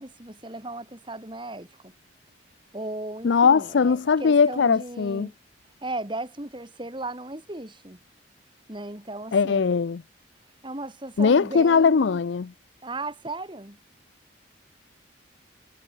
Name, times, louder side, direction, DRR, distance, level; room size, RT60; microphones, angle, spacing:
voice 1, 0.0-1.9 2.7-5.3 5.8-8.0 8.7-9.7 10.6-12.2 12.8-13.8, right 2 dB, 25° right, 2.1 m, -36 dB
voice 2, 3.2-5.3 9.3-10.0 11.2-12.5, left 5 dB, 60° left, 0.4 m, -20 dB
head